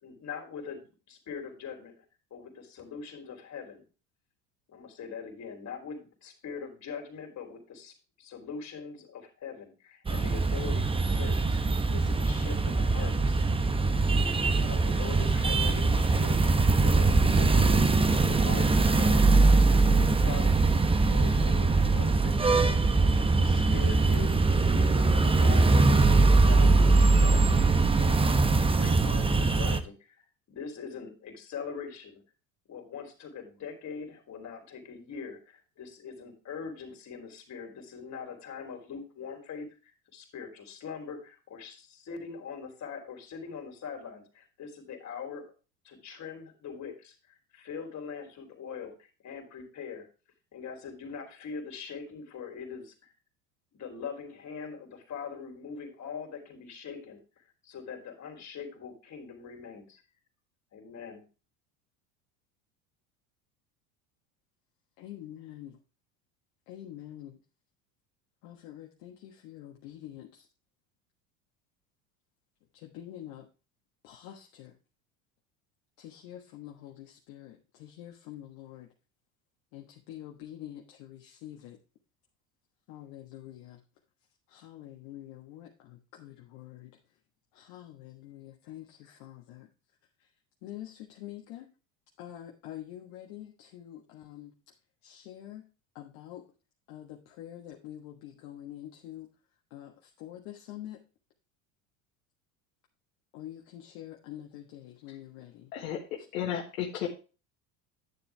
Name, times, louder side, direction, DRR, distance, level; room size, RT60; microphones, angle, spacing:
voice 1, 0.0-2.0 2.3-3.8 4.7-11.6 11.9-13.4 14.6-22.8 23.4-28.3 28.6-32.2 32.7-45.4 45.8-50.1 50.5-53.1 53.7-60.0 60.7-61.2, left 6 dB, 40° left, 4 dB, 3.3 m, -42 dB
sound 1, 10.1-29.8, right 3 dB, 15° right, 0.9 m, -22 dB
voice 2, 65.0-65.8 66.7-67.4 68.4-70.5 72.7-73.4 74.0-74.7 76.0-78.9 79.7-81.8 82.9-83.8 84.5-86.9 87.5-89.7 90.6-91.7 92.2-94.5 95.0-95.6 95.9-96.5 96.9-99.3 99.7-101.0 103.3-105.7, left 12 dB, 65° left, 1 dB, 1.5 m, -46 dB
voice 3, 105.7-107.1, left 10 dB, 80° left, 0 dB, 1.7 m, -34 dB
10.0 x 7.1 x 3.4 m, 0.33 s
hypercardioid pair, 85°, 40 cm